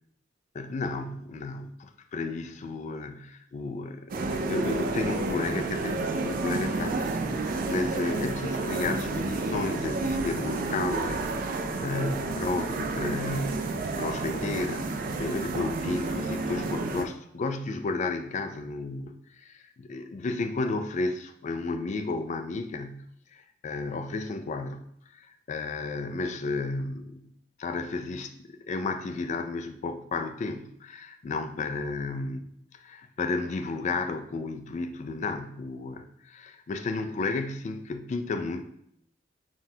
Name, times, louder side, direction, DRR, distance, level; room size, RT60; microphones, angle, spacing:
voice 1, 0.5-13.7 14.0-27.3 27.6-38.6, left 3 dB, 40° left, 8 dB, 0.3 m, -33 dB
sound 1, 4.1-17.0, right 3 dB, 50° right, 0.4 m, -30 dB
5.7 x 2.3 x 2.7 m, 0.72 s
head